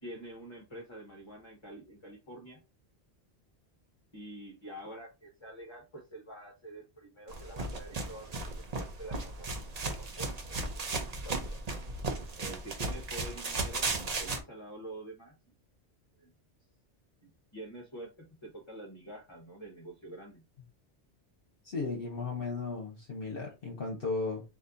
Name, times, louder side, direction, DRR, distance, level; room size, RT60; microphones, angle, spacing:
voice 1, 0.0-2.6 4.1-10.4 10.9-11.6 12.4-15.4 16.2-16.3 17.5-20.4, right 1 dB, 25° left, 1.1 m, -47 dB
sound 1, 7.3-14.4, right 3 dB, 40° right, 0.8 m, -36 dB
voice 2, 21.6-24.4, left 3 dB, 55° left, 1.2 m, -35 dB
4.2 x 2.7 x 3.8 m
omnidirectional pair, 1.2 m